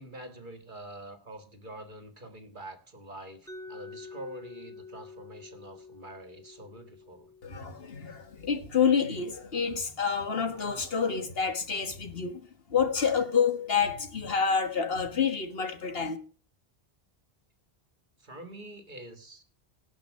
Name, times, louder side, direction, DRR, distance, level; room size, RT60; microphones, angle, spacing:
voice 1, 0.0-7.3 18.2-19.4, right 1 dB, 50° right, 1.9 m, -45 dB
Mallet percussion, 3.5-9.3, left 4 dB, 5° left, 1.4 m, -49 dB
voice 2, 7.4-16.2, left 6 dB, 70° left, 1.8 m, -28 dB
18.0 x 6.3 x 6.3 m
omnidirectional pair, 1.0 m